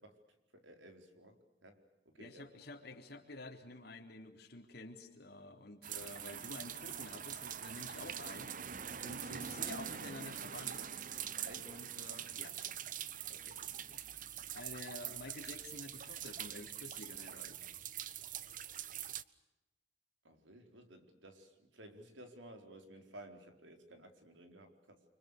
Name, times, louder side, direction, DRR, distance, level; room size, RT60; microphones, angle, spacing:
voice 1, 0.0-2.4 11.4-11.7 13.3-13.9 20.2-25.0, right 1 dB, 90° right, 6 dB, 4.5 m, -56 dB
voice 2, 2.2-8.6 9.0-10.9 11.6-12.6 13.9-14.0 14.5-17.6, left 2 dB, 60° left, 4 dB, 3.8 m, -50 dB
sound 1, 5.8-19.2, right 9 dB, 45° right, 0.9 m, -44 dB
29.5 x 25.5 x 6.8 m, 0.97 s
head